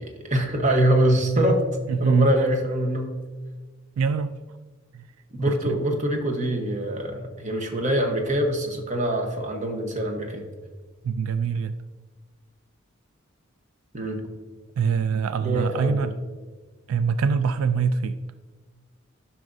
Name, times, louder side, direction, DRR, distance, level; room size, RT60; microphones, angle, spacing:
voice 1, 0.0-1.6 2.0-3.1 5.3-10.5 13.9-14.2 15.4-16.1, right 1 dB, 35° right, 3 dB, 1.0 m, -24 dB
voice 2, 1.9-2.3 4.0-4.4 4.9-5.0 5.4-5.8 11.0-11.7 14.8-16.2 16.9-18.2, right 5 dB, 85° right, 12 dB, 0.3 m, -24 dB
11.0 x 6.0 x 2.6 m, 1.4 s
head